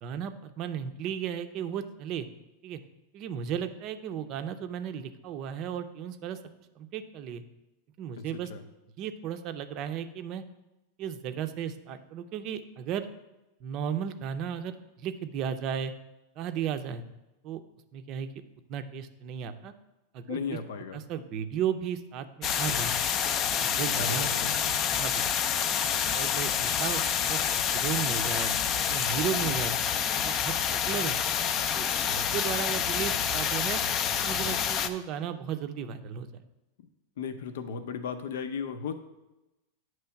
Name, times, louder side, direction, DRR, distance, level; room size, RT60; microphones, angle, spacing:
voice 1, 0.0-2.3 2.6-2.8 3.1-6.4 6.8-7.4 8.0-8.5 9.0-10.4 11.0-13.1 13.6-15.9 16.4-17.0 17.4-17.6 17.9-18.3 18.7-19.7 20.1-20.4 20.9-23.0 23.6-24.3 24.9-25.2 26.1-27.0 27.3-27.4 27.7-28.5 28.9-29.8 30.2-31.2 31.7-33.8 34.2-36.4, right 8 dB, 40° right, 9 dB, 0.5 m, -34 dB
voice 2, 8.2-8.6 20.3-21.0 23.9-24.8 29.6-29.7 37.2-38.9, left 6 dB, 80° left, 8 dB, 0.6 m, -36 dB
sound 1, 22.4-34.9, left 8 dB, 30° left, 0.4 m, -28 dB
9.2 x 3.1 x 5.7 m, 0.99 s
supercardioid pair, 150°, 0 cm